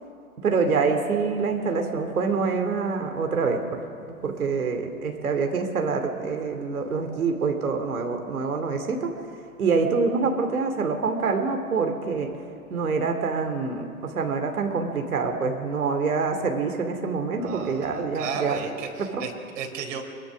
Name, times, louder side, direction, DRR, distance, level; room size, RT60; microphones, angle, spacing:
voice 1, 0.4-3.8 4.2-9.1 9.6-12.3 12.7-18.6, right 4 dB, 90° right, 4 dB, 2.7 m, -26 dB
voice 2, 17.4-20.0, right 6 dB, 60° right, 3 dB, 4.1 m, -34 dB
23.5 x 22.0 x 6.3 m, 2.4 s
hypercardioid pair, 130°, 42 cm